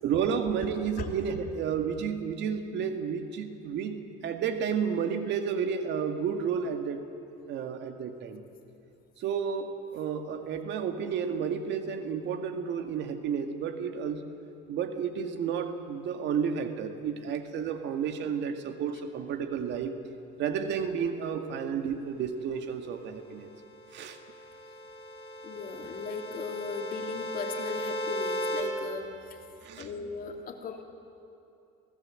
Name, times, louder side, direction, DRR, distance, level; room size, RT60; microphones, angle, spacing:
voice 1, 0.0-7.0 7.5-8.4 9.2-14.3 14.7-20.0 20.4-23.5 23.9-24.2 29.6-29.9, right 7 dB, 60° right, 7 dB, 1.9 m, -31 dB
sound 1, 23.7-28.6, equal, 25° left, 5.6 m, -36 dB
voice 2, 25.4-29.4 29.8-30.8, left 5 dB, 45° left, 3 dB, 2.8 m, -38 dB
24.0 x 17.0 x 7.7 m, 2.7 s
supercardioid pair, 90°, 21 cm